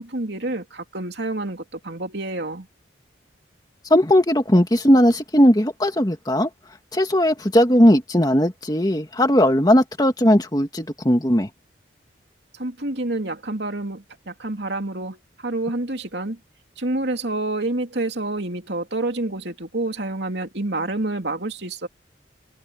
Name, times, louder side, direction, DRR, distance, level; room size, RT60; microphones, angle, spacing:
voice 1, 0.0-2.7 12.5-16.4 16.8-21.9, right 2 dB, 60° right, 3.0 m, -28 dB
voice 2, 3.9-6.5 6.9-11.5, equal, 20° left, 2.0 m, -18 dB
head